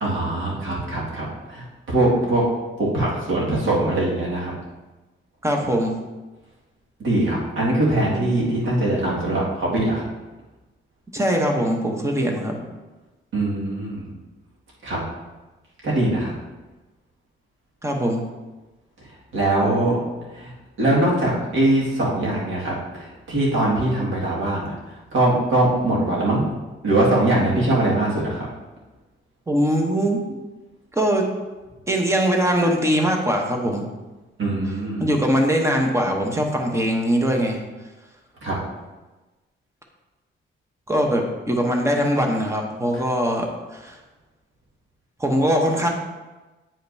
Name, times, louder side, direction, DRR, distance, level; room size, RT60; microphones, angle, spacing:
voice 1, 0.0-2.4 2.8-4.6 7.0-10.0 13.3-14.1 14.8-15.0 15.8-16.3 19.3-20.0 20.3-20.5 20.8-26.5 26.8-28.5 34.4-35.1 38.4-38.6, right 1 dB, 75° right, -5 dB, 2.0 m, -22 dB
voice 2, 5.4-6.0 11.1-12.6 17.8-18.2 29.5-30.2 31.0-31.3 31.9-33.9 35.0-37.6 40.9-43.5 43.7-43.9 45.2-45.9, equal, 15° right, 1 dB, 0.9 m, -21 dB
8.8 x 5.1 x 2.7 m, 1.2 s
wide cardioid pair, 145°, 20 cm